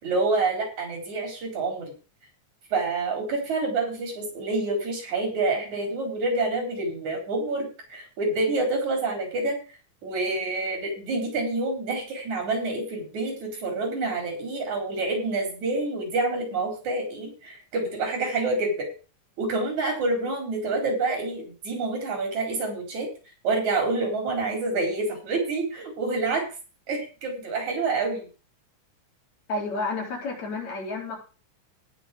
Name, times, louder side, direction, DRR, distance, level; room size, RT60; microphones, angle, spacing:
voice 1, 0.0-1.9 2.7-9.6 10.0-18.9 19.4-23.1 23.4-26.5 26.9-28.3, right 3 dB, 75° right, 1 dB, 5.8 m, -27 dB
voice 2, 29.5-31.2, left 3 dB, 65° left, -2 dB, 5.4 m, -30 dB
18.5 x 6.2 x 5.1 m, 0.35 s
omnidirectional pair, 3.3 m